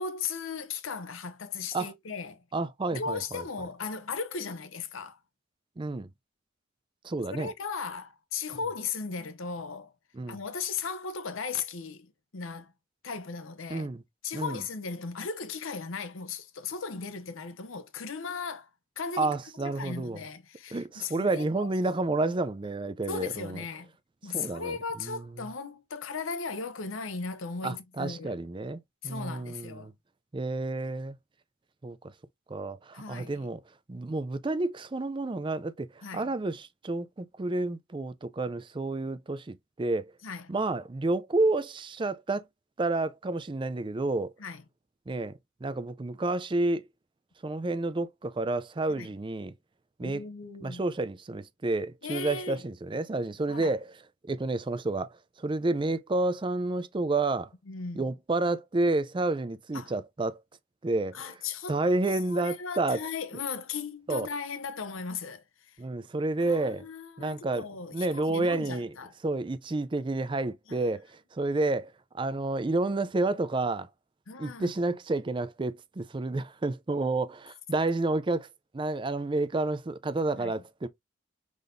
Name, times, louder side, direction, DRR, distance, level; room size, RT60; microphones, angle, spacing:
voice 1, 0.0-2.4 2.9-5.2 7.3-9.9 10.3-12.7 13.0-13.9 14.2-18.7 19.0-19.3 19.6-22.0 22.3-22.4 23.1-23.9 24.2-28.4 29.0-29.9 32.9-33.5 36.0-36.3 40.2-40.5 44.4-44.6 48.9-49.1 50.0-50.8 52.0-52.6 53.5-53.7 57.7-58.0 59.7-59.9 61.1-65.8 66.4-69.1 70.7-70.8 74.3-74.7 80.4-80.6, left 5 dB, 85° left, 0.8 m, -37 dB
voice 2, 2.5-3.4 5.8-6.1 7.0-7.5 10.1-10.4 13.7-14.0 14.3-14.6 19.2-20.2 20.7-23.6 24.3-25.2 27.6-29.9 30.3-31.2 31.8-32.0 32.5-33.6 33.9-40.1 40.5-42.5 42.8-44.3 45.1-46.9 47.4-49.5 50.0-50.2 50.6-53.9 54.3-57.5 58.0-60.4 60.8-61.3 61.7-63.0 64.1-64.3 65.8-66.9 67.2-68.9 69.2-73.9 74.4-78.5 78.7-80.9, right 2 dB, 25° right, 0.4 m, -30 dB
5.2 x 3.9 x 2.6 m
head